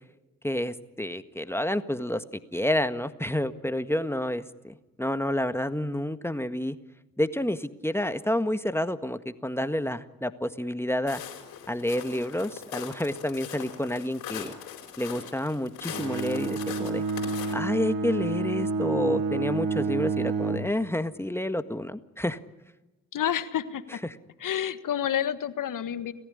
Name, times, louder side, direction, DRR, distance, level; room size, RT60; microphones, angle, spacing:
voice 1, 0.4-2.2 2.5-6.8 7.2-11.2 11.7-14.5 15.0-17.0 17.5-22.4 24.0-24.1, left 1 dB, 5° left, 10 dB, 1.7 m, -29 dB
Walk footsteps, 11.1-17.5, left 9 dB, 80° left, 4.5 m, -41 dB
Bowed string instrument, 15.9-20.8, right 4 dB, 65° right, 3.3 m, -29 dB
voice 2, 23.1-24.0 24.4-26.1, left 10 dB, 60° left, 12 dB, 1.6 m, -29 dB
29.5 x 15.0 x 9.9 m, 1.1 s
hypercardioid pair, 45°, 36 cm